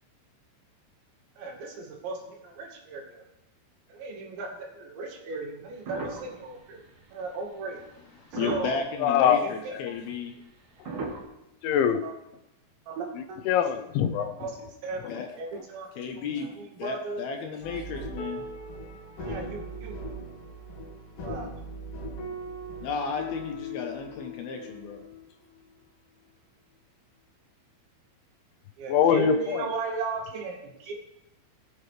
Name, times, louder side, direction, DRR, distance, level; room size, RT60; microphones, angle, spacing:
voice 1, 1.4-3.2 3.9-6.8 7.1-7.8 8.4-8.8 9.4-9.7 12.0-12.1 12.9-13.4 14.2-15.9 16.3-17.2 19.2-19.9 21.2-21.5 28.8-30.9, right 3 dB, 75° right, 0 dB, 4.4 m, -36 dB
sound 1, 5.9-7.2 7.9-8.0 8.3-9.0 9.7-9.8 10.8-11.2, right 3 dB, 50° right, 3.0 m, -35 dB
voice 2, 8.2-10.3 15.1-15.3 16.0-16.5 16.8-18.5 22.8-25.0, left 5 dB, 70° left, 4 dB, 2.6 m, -34 dB
voice 3, 9.0-9.9 11.6-12.0 13.5-14.3 15.0-15.1 28.9-29.6, left 8 dB, 90° left, 8 dB, 3.2 m, -23 dB
sound 2, 17.6-25.3 25.5-25.6, equal, 45° left, 2.2 m, -39 dB
21.0 x 9.2 x 3.3 m, 0.91 s
omnidirectional pair, 5.2 m